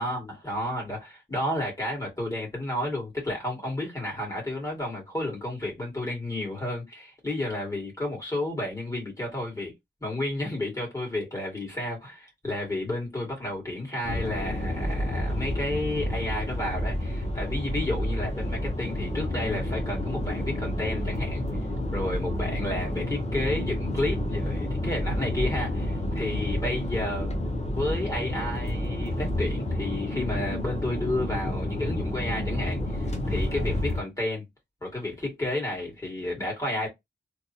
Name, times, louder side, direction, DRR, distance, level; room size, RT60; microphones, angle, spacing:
voice 1, 0.0-9.7 10.0-21.4 21.9-27.4 27.8-34.5 34.8-36.9, left 1 dB, 15° left, 2.2 m, -31 dB
sound 1, 14.0-34.0, left 1 dB, 35° left, 0.8 m, -30 dB
3.4 x 2.4 x 2.8 m
wide cardioid pair, 105°, 18 cm